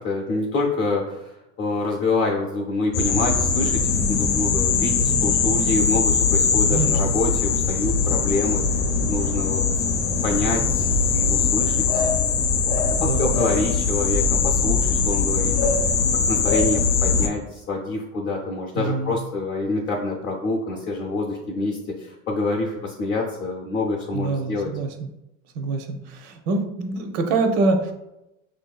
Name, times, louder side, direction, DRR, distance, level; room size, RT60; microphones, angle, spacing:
voice 1, 0.0-9.6 10.2-12.1 13.0-15.9 16.3-24.7, left 2 dB, 35° left, -2 dB, 0.6 m, -27 dB
sound 1, 2.9-17.3, left 5 dB, 80° left, 0.7 m, -21 dB
voice 2, 13.0-13.3 18.7-19.1 24.1-25.1 25.5-27.9, right 3 dB, 70° right, 5 dB, 0.7 m, -25 dB
5.6 x 2.6 x 2.3 m, 0.91 s
cardioid pair, 165°, 34 cm